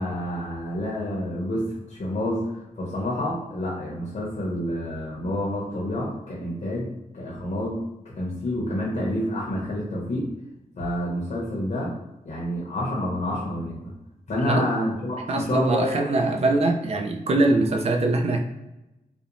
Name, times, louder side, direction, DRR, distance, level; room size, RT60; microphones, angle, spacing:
voice 1, 0.0-6.9 7.1-7.8 8.2-10.3 10.8-11.9 12.3-13.9 14.3-16.0, left 1 dB, 55° left, -5 dB, 0.7 m, -28 dB
voice 2, 15.3-18.4, right 2 dB, 45° right, 3 dB, 0.4 m, -22 dB
2.5 x 2.0 x 2.9 m, 0.96 s
wide cardioid pair, 135°, 14 cm